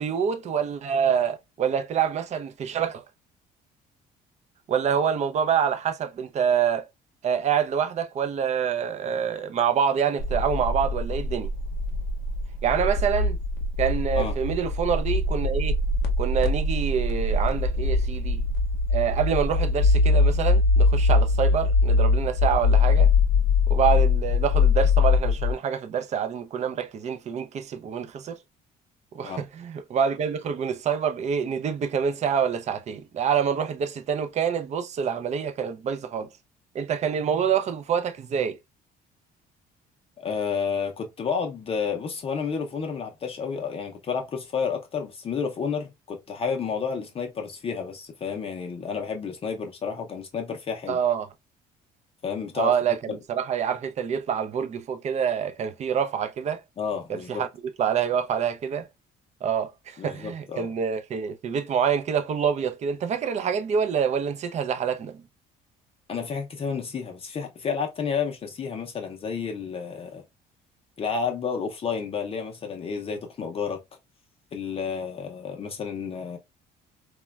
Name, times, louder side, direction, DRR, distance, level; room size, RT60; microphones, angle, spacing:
voice 1, 0.0-3.0 4.7-6.9 7.2-11.5 12.6-13.4 13.8-15.8 16.2-18.4 18.9-23.1 23.7-28.4 29.1-36.3 36.7-38.6 50.9-51.3 52.6-56.6 57.1-57.5 57.8-58.9 59.4-65.2, right 7 dB, 40° right, 0.4 m, -26 dB
sound 1, 10.2-25.5, left 3 dB, 80° left, 0.6 m, -22 dB
voice 2, 40.2-51.0 52.2-52.7 53.1-53.2 56.8-57.4 60.0-60.7 66.1-70.2 71.0-73.8 74.5-76.4, left 6 dB, 35° left, 0.5 m, -31 dB
2.9 x 2.2 x 2.2 m
cardioid pair, 110°, 17 cm